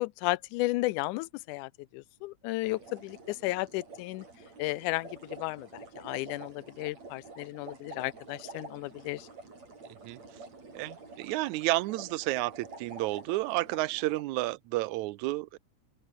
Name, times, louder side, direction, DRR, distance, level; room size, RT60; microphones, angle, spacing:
voice 1, 0.0-4.3 4.6-9.3, left 20 dB, 90° left, 2.1 m, -34 dB
sound 1, 2.6-14.2, right 3 dB, 60° right, 8.2 m, -48 dB
voice 2, 10.8-15.6, right 19 dB, 80° right, 1.9 m, -31 dB
open air
omnidirectional pair, 3.5 m